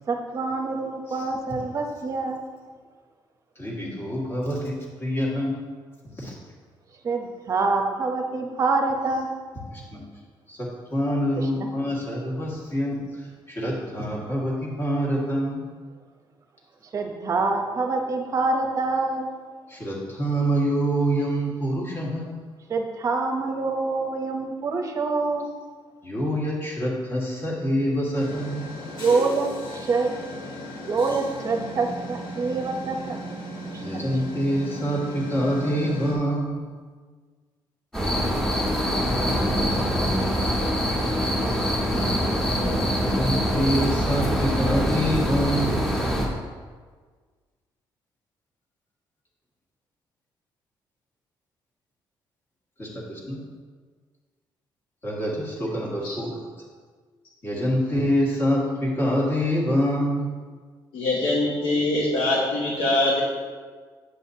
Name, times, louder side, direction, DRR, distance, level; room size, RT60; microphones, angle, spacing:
voice 1, 0.1-2.4 7.0-9.3 11.4-11.7 16.8-19.3 22.7-25.5 29.0-30.2 30.8-33.2 33.7-34.0, right 3 dB, 35° right, 4 dB, 0.8 m, -26 dB
voice 2, 3.6-5.6 6.1-6.4 9.7-10.0 10.5-15.6 19.7-22.4 26.0-28.8 33.8-36.7 39.4-39.9 43.0-45.9 52.8-53.4 55.0-56.3 57.4-60.3, equal, 25° left, -4 dB, 1.7 m, -26 dB
sound 1, 28.1-36.1, equal, 55° left, 2.1 m, -36 dB
sound 2, 37.9-46.3, equal, 5° left, 1.7 m, -24 dB
voice 3, 60.9-63.2, left 2 dB, 80° left, -5 dB, 1.4 m, -23 dB
8.2 x 7.7 x 2.8 m, 1.5 s
cardioid pair, 165°, 9 cm